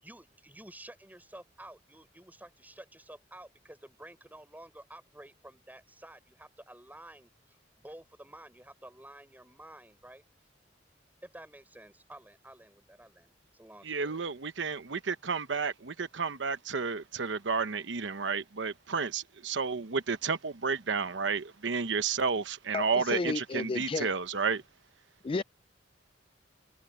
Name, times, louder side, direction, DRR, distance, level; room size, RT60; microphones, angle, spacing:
voice 1, 0.0-7.6 7.8-10.2 11.2-14.2, right 1 dB, 10° right, 5.1 m, -51 dB
voice 2, 13.9-24.6, right 5 dB, 90° right, 0.9 m, -31 dB
voice 3, 22.7-24.1 25.2-25.4, left 3 dB, 30° left, 0.3 m, -32 dB
head